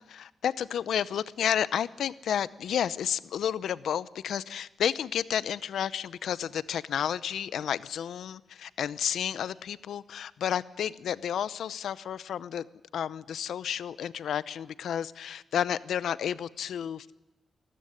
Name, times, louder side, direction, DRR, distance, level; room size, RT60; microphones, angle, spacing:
voice 1, 0.0-12.7 12.9-17.1, left 9 dB, 85° left, 17 dB, 0.7 m, -31 dB
21.0 x 14.0 x 9.9 m, 1.1 s
cardioid pair, 90°, 0 cm